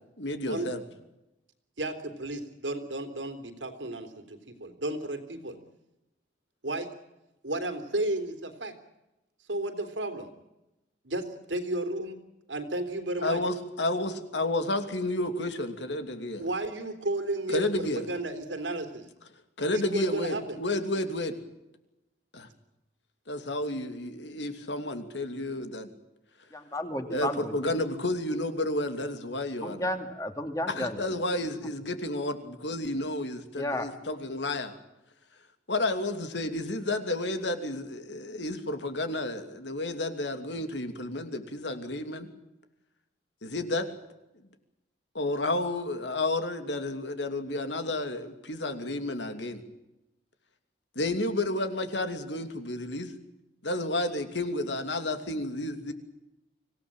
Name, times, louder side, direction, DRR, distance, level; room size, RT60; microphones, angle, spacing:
voice 1, 0.2-0.8 13.2-16.4 17.5-18.0 19.6-21.3 22.3-22.5 23.3-25.9 27.1-29.8 30.7-34.7 35.7-42.3 43.4-43.9 45.1-49.6 51.0-53.1 53.6-55.9, left 2 dB, 75° left, 7 dB, 2.9 m, -31 dB
voice 2, 1.8-5.6 6.6-6.9 7.4-8.7 9.5-10.3 11.0-12.2 12.5-13.4 16.4-19.1 19.7-20.6, right 2 dB, 90° right, 8 dB, 3.5 m, -33 dB
voice 3, 26.5-27.7 29.6-31.2 33.6-33.9, left 1 dB, 20° left, 6 dB, 2.4 m, -33 dB
25.5 x 17.5 x 9.0 m, 0.94 s
head